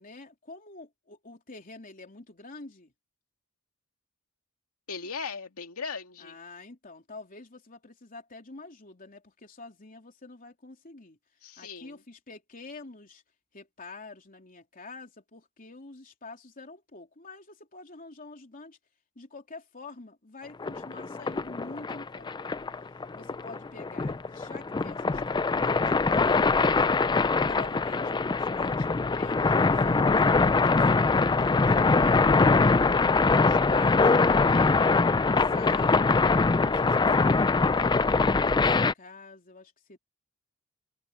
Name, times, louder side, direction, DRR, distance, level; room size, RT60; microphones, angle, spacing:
voice 1, 0.0-2.9 6.2-11.2 11.6-13.2 13.5-18.8 19.1-22.6 23.1-26.7 27.1-32.2 32.6-35.0 35.4-36.2 36.5-40.0, left 3 dB, 40° left, 3.4 m, -47 dB
voice 2, 4.9-6.4 11.4-12.0, left 5 dB, 80° left, 2.4 m, -38 dB
sound 1, 20.6-38.9, left 4 dB, 20° left, 0.4 m, -23 dB
head